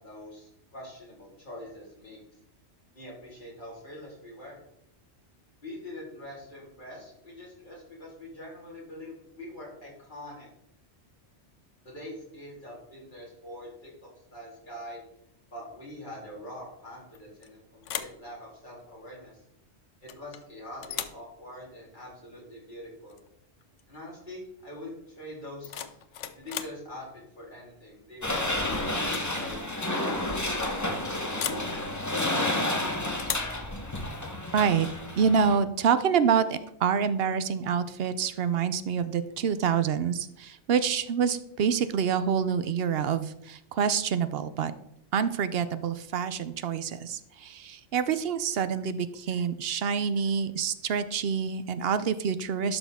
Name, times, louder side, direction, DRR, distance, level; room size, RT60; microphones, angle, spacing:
voice 1, 0.0-2.2 2.9-4.6 5.6-10.5 11.8-13.9 14.3-15.0 15.5-19.3 20.0-23.2 23.9-25.7 26.4-30.0, left 1 dB, 45° left, -5 dB, 3.7 m, -44 dB
sound 1, 17.1-17.5 17.8-18.2 20.1-20.4 20.8-21.2 23.1-23.3 23.6-24.0 25.4-26.8 28.3-28.6 29.0-29.3 29.6-29.7 31.4-31.7 33.2-33.6, left 9 dB, 90° left, 1.0 m, -36 dB
sound 2, 28.2-35.6, left 1 dB, 15° left, 1.0 m, -30 dB
voice 2, 34.5-34.9 35.2-44.7 45.1-52.8, right 7 dB, 65° right, 13 dB, 0.8 m, -27 dB
11.5 x 6.1 x 3.6 m, 0.74 s
omnidirectional pair, 1.2 m